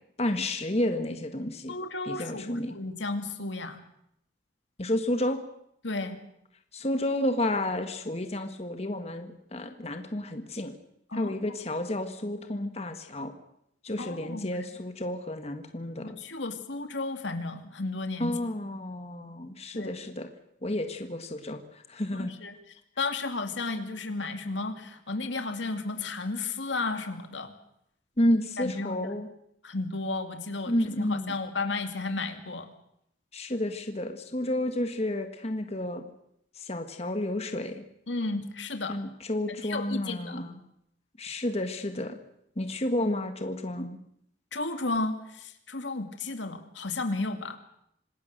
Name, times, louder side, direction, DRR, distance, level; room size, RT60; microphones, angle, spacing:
voice 1, 0.2-1.7 2.0-2.8 4.8-5.4 6.7-10.7 11.1-13.3 13.8-16.2 18.2-20.3 20.6-21.6 21.9-22.3 28.2-29.3 30.7-31.3 33.3-36.0 36.6-37.8 38.9-40.6 41.2-42.2 42.6-44.0, left 1 dB, 35° left, 6 dB, 1.7 m, -31 dB
voice 2, 1.7-3.8 5.8-6.2 11.1-11.6 14.0-14.5 16.0-18.4 19.7-19.9 22.1-22.6 23.0-27.5 28.6-29.1 29.6-32.7 38.1-39.0 39.5-40.4 44.5-47.6, left 3 dB, 85° left, 7 dB, 2.5 m, -33 dB
26.5 x 19.5 x 6.7 m, 0.74 s
head